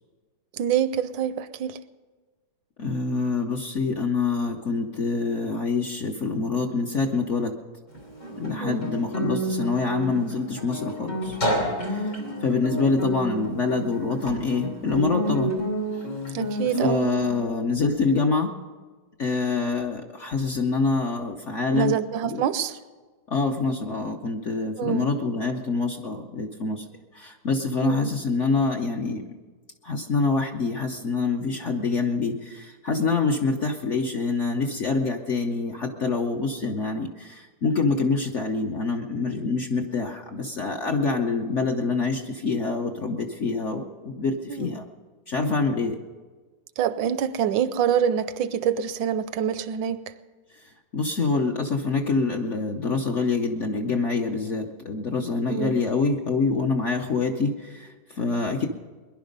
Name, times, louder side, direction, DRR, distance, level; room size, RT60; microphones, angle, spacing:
voice 1, 0.5-1.8 8.6-8.9 16.3-17.1 21.7-22.8 24.8-25.1 27.8-28.1 44.5-44.8 46.8-50.1 55.5-55.8, right 9 dB, 75° right, 14 dB, 1.3 m, -26 dB
voice 2, 2.8-7.5 8.4-11.4 11.8-12.1 12.4-15.5 16.8-18.5 19.2-21.9 22.2-22.4 23.3-26.8 27.1-29.2 29.8-44.8 45.3-46.0 50.9-58.7, left 4 dB, 55° left, 3 dB, 0.9 m, -26 dB
Guitar, 7.9-17.4, right 1 dB, 90° left, 3.7 m, -29 dB
20.5 x 11.0 x 5.3 m, 1.4 s
omnidirectional pair, 2.1 m